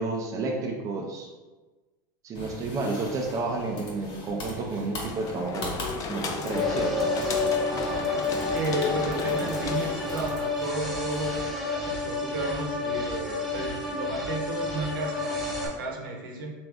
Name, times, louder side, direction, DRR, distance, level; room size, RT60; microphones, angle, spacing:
voice 1, 0.0-1.3 2.2-5.7 6.1-7.1, right 3 dB, 30° right, 0 dB, 0.5 m, -31 dB
sound 1, 2.3-11.5, left 2 dB, 55° left, 1.3 m, -41 dB
sound 2, 5.1-10.6, left 4 dB, 30° left, 0.5 m, -34 dB
sound 3, 6.5-15.7, left 3 dB, ahead, 0.9 m, -30 dB
voice 2, 8.5-16.5, right 2 dB, 80° right, 0 dB, 0.8 m, -33 dB
3.3 x 2.5 x 3.4 m, 1.2 s
supercardioid pair, 110°, 11 cm